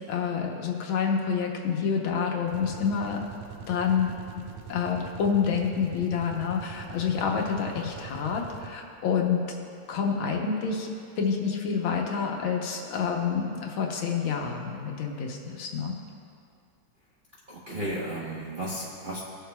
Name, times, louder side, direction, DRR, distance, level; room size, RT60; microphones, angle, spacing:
voice 1, 0.1-3.2 3.7-4.1 4.3-9.4 9.9-10.9 11.2-15.9, left 6 dB, 75° left, 1 dB, 1.7 m, -28 dB
sound 1, 2.4-9.0, right 7 dB, 80° right, 1.4 m, -43 dB
voice 2, 17.5-19.2, right 1 dB, 35° right, -7 dB, 0.9 m, -34 dB
19.0 x 6.7 x 2.3 m, 2.4 s
omnidirectional pair, 2.3 m